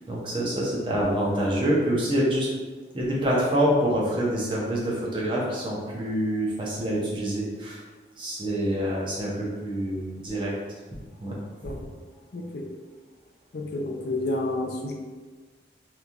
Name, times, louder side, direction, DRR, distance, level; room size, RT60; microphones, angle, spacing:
voice 1, 0.1-2.5 2.9-7.8 8.2-10.5 11.2-11.3, equal, 30° right, -4 dB, 0.6 m, -26 dB
voice 2, 12.3-12.7 13.5-14.9, left 2 dB, 65° left, 1 dB, 0.5 m, -30 dB
3.0 x 2.6 x 2.4 m, 1.4 s
head